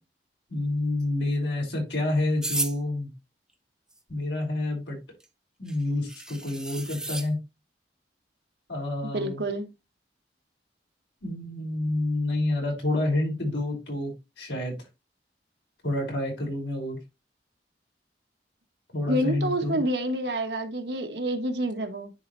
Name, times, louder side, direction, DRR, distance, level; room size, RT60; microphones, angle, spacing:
voice 1, 0.5-3.1 4.1-5.0 5.6-7.4 8.7-9.4 11.2-14.8 15.8-17.0 18.9-19.8, left 2 dB, 90° left, 5.5 m, -28 dB
sound 1, 2.4-2.7 5.2-5.3 5.7-5.8 6.1-7.3, right 2 dB, 5° right, 0.7 m, -32 dB
voice 2, 9.0-9.7 19.1-22.1, right 1 dB, 70° right, 1.3 m, -28 dB
10.0 x 4.4 x 3.2 m
head